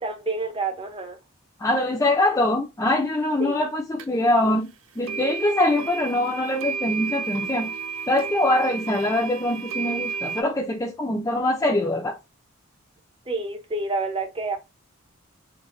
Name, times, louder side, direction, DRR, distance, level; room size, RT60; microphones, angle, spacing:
voice 1, 0.0-1.2 3.4-3.7 13.3-14.6, right 3 dB, 25° right, 0.7 m, -28 dB
voice 2, 1.6-4.7 5.0-7.7 8.1-12.2, left 1 dB, 15° left, 0.5 m, -23 dB
sound 1, 4.0-4.1 5.0-10.4, right 6 dB, 65° right, 0.5 m, -32 dB
3.9 x 2.2 x 3.8 m
head